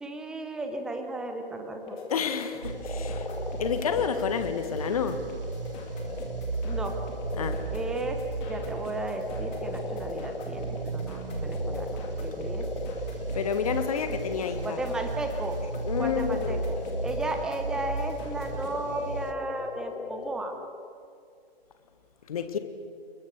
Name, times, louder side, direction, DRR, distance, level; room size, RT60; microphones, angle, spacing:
voice 1, 0.0-1.9 6.6-7.0 7.7-12.7 13.8-14.2 14.6-15.6 16.0-16.8 17.0-20.6, right 2 dB, ahead, 5 dB, 0.8 m, -34 dB
sound 1, 1.8-18.8, left 4 dB, 15° left, 2.4 m, -49 dB
sound 2, 1.9-20.9, left 4 dB, 70° left, 1.2 m, -39 dB
voice 2, 2.1-3.3 3.6-5.3 7.4-7.6 13.3-14.8 15.8-16.6 22.3-22.6, left 7 dB, 35° left, 9 dB, 1.6 m, -29 dB
sound 3, 2.6-19.3, right 3 dB, 60° right, 1.9 m, -35 dB
29.5 x 21.5 x 6.4 m, 2.4 s
figure-of-eight pair, 135°, 31 cm